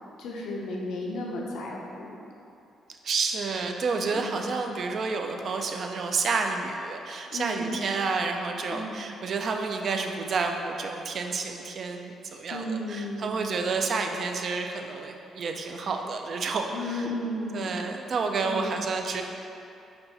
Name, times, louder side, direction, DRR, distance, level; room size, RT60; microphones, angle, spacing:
voice 1, 0.2-2.2 4.0-4.5 7.3-7.8 8.7-9.0 12.5-13.3 16.7-17.7 18.4-18.7, left 1 dB, 75° left, -2 dB, 0.5 m, -34 dB
voice 2, 3.0-17.1 17.5-19.2, right 4 dB, 55° right, 4 dB, 0.4 m, -30 dB
5.2 x 2.3 x 4.0 m, 2.8 s
cardioid pair, 90°, 0 cm